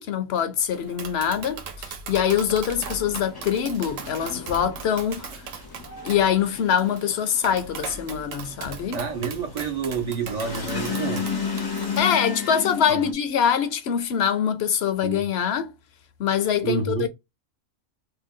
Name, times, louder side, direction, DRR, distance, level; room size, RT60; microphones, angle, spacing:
voice 1, 0.0-5.3 6.0-9.0 12.0-15.7 16.2-17.1, left 8 dB, 65° left, 0.7 m, -24 dB
Tap, 0.7-12.0, right 6 dB, 75° right, 1.0 m, -39 dB
sound 1, 2.8-13.1, left 5 dB, 35° left, 0.3 m, -33 dB
voice 2, 8.9-11.3 12.9-13.0 15.0-15.2 16.6-17.1, right 6 dB, 50° right, 0.5 m, -29 dB
2.7 x 2.2 x 3.5 m
omnidirectional pair, 1.4 m